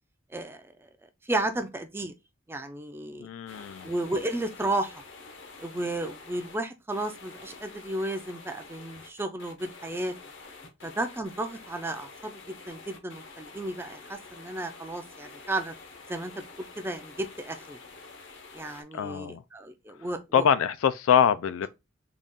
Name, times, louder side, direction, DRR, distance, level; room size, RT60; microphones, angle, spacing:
voice 1, 0.3-0.7 1.2-2.1 2.5-3.3 3.8-5.0 5.6-10.1 10.8-15.7 16.1-17.8 18.5-20.4, right 1 dB, 10° right, 0.4 m, -33 dB
voice 2, 3.2-3.9 18.9-19.4 20.3-21.7, left 8 dB, 85° left, 0.4 m, -24 dB
sound 1, 3.5-6.6 6.9-18.8, left 4 dB, 65° left, 0.8 m, -48 dB
3.9 x 2.4 x 3.6 m
head